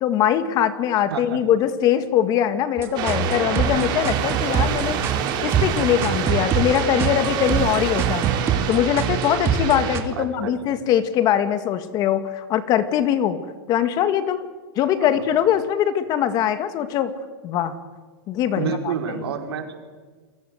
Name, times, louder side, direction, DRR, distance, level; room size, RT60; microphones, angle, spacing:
voice 1, 0.0-5.0 5.4-8.3 8.7-13.4 13.7-14.5 14.8-17.1 17.4-17.7 18.3-18.9, left 10 dB, 30° left, 10 dB, 2.0 m, -22 dB
sound 1, 2.8-10.0, right 7 dB, 20° right, 2.5 m, -25 dB
sound 2, 3.0-10.0, right 8 dB, 35° right, 5.2 m, -27 dB
voice 2, 10.2-10.8 15.0-15.2 18.5-19.7, right 7 dB, 80° right, 3 dB, 5.5 m, -29 dB
29.0 x 23.0 x 8.1 m, 1.4 s
supercardioid pair, 155°, 13 cm